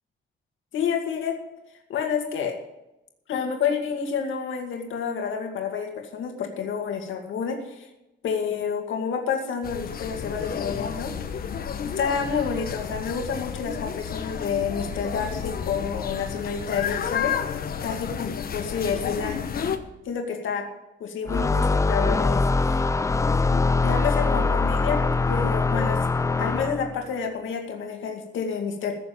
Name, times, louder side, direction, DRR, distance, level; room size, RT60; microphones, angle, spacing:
voice 1, 0.7-1.4 1.9-2.5 3.3-7.9 8.2-11.1 11.8-17.3 17.8-19.4 20.0-20.6 21.0-22.8 23.3-25.0 25.3-26.0 26.4-28.9, left 6 dB, 75° left, 2 dB, 2.3 m, -29 dB
sound 1, 9.6-19.8, left 7 dB, 45° left, 1.2 m, -31 dB
sound 2, 21.3-27.0, left 3 dB, 15° left, 0.4 m, -23 dB
15.5 x 6.9 x 8.8 m, 0.94 s
cardioid pair, 150°, 20 cm